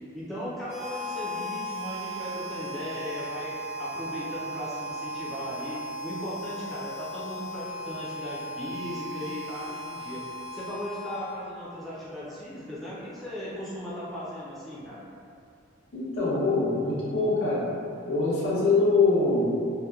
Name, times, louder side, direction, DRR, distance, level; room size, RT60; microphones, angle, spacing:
voice 1, 0.1-10.3 10.5-15.0, equal, ahead, -10 dB, 0.3 m, -37 dB
Harmonica, 0.6-11.7, equal, 80° right, 0.6 m, -37 dB
voice 2, 15.9-17.6 18.0-19.5, left 3 dB, 80° left, -9 dB, 0.8 m, -23 dB
2.7 x 2.1 x 2.3 m, 2.5 s
head